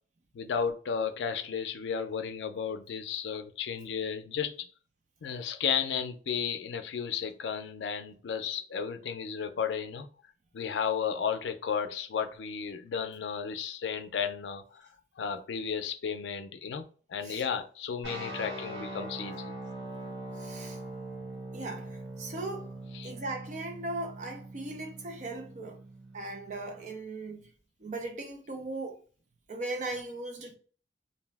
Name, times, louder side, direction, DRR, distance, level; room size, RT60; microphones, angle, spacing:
voice 1, 0.3-4.7 5.2-10.1 10.5-14.8 15.2-16.8 17.1-19.5 22.9-23.1, left 7 dB, 85° left, 0.4 m, -33 dB
sound 1, 18.0-26.9, right 1 dB, 85° right, 1.1 m, -42 dB
voice 2, 20.4-20.8 21.5-22.7 23.0-25.8 26.1-27.5 27.8-29.0 29.5-30.6, right 2 dB, 45° right, 0.5 m, -38 dB
2.6 x 2.0 x 3.2 m
head